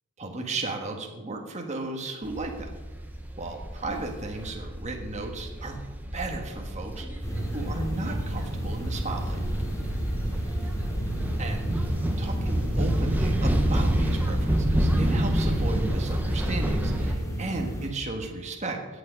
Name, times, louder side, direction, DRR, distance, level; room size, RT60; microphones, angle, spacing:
voice 1, 0.2-2.7 3.4-5.8 6.1-9.4 11.4-11.9 12.2-19.0, right 2 dB, 30° right, 2 dB, 1.5 m, -35 dB
sound 1, 2.2-17.1, right 1 dB, 10° right, 1.1 m, -28 dB
sound 2, 7.2-17.9, equal, 15° left, 2.5 m, -33 dB
16.5 x 8.6 x 5.2 m, 1.2 s
head